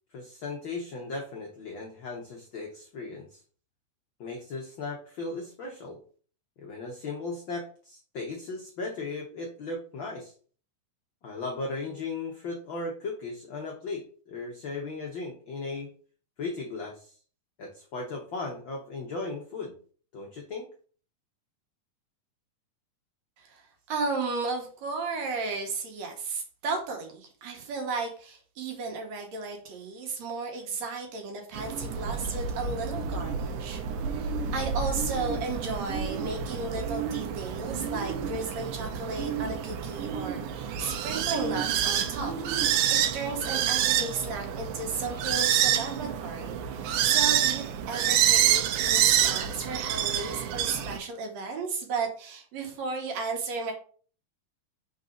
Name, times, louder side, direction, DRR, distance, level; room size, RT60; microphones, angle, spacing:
voice 1, 0.1-3.4 4.2-6.0 6.6-10.3 11.2-15.9 16.4-17.2 17.6-19.7 20.1-20.7, left 3 dB, 80° left, 0 dB, 1.0 m, -36 dB
voice 2, 23.4-42.3 42.9-53.7, right 4 dB, 65° right, 2 dB, 2.2 m, -34 dB
sound 1, 31.5-51.0, right 9 dB, 85° right, 2.0 m, -28 dB
4.7 x 4.0 x 5.0 m, 0.43 s
omnidirectional pair, 3.6 m